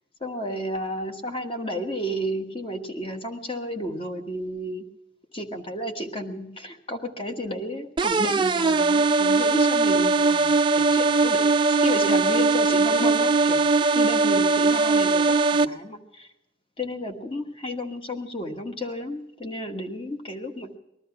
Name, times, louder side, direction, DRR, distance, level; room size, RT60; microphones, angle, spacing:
voice 1, 0.2-4.8 5.3-16.3 16.8-20.8, equal, 30° left, 5 dB, 1.4 m, -32 dB
sound 1, 8.0-15.7, right 3 dB, 25° right, 0.5 m, -20 dB
19.5 x 12.5 x 5.8 m, 0.90 s
head